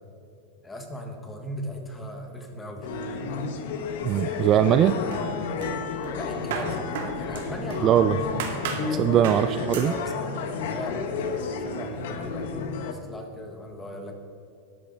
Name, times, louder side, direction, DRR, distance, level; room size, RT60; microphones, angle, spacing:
voice 1, 0.6-2.9 6.1-9.2 9.8-10.3 10.6-14.1, equal, 10° left, 3 dB, 1.4 m, -38 dB
sound 1, 2.8-12.9, left 5 dB, 70° left, 1.2 m, -31 dB
voice 2, 4.0-5.0 7.8-8.2 9.0-9.9, right 10 dB, 30° right, 11 dB, 0.3 m, -20 dB
sound 2, 4.0-4.8 5.1-7.9 8.4-8.9 9.2-9.5 9.7-10.0, right 5 dB, 75° right, 2.1 m, -35 dB
13.0 x 10.5 x 4.0 m, 2.6 s
supercardioid pair, 160°, 0 cm